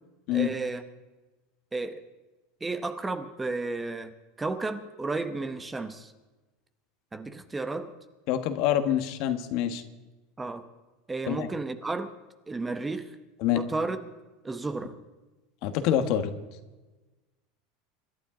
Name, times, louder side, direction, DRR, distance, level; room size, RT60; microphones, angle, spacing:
voice 1, 0.3-0.8 1.7-2.0 2.6-6.1 7.1-7.9 10.4-10.7 11.1-12.1 12.5-13.2 13.5-14.0 14.4-15.0, right 3 dB, 10° right, 10 dB, 1.0 m, -33 dB
voice 2, 8.3-9.8 11.3-11.5 13.4-13.6 15.6-16.3, left 10 dB, 55° left, 9 dB, 1.3 m, -26 dB
26.0 x 11.5 x 3.9 m, 1.2 s
supercardioid pair, 140°, 0 cm